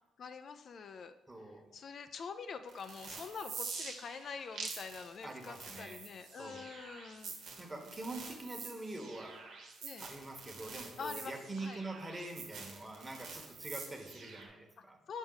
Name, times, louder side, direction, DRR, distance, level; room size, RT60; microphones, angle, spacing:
voice 1, 0.2-1.1 1.4-7.4 9.8-10.1 11.0-11.8 15.1-15.2, left 5 dB, 55° left, 9 dB, 0.3 m, -45 dB
voice 2, 1.3-1.7 5.2-6.0 6.4-6.7 7.6-9.4 10.0-15.0, right 2 dB, 20° right, 3 dB, 1.2 m, -45 dB
sound 1, 2.7-14.5, right 4 dB, 80° right, 1.3 m, -47 dB
6.1 x 5.1 x 3.9 m, 1.0 s
cardioid pair, 90°, 0 cm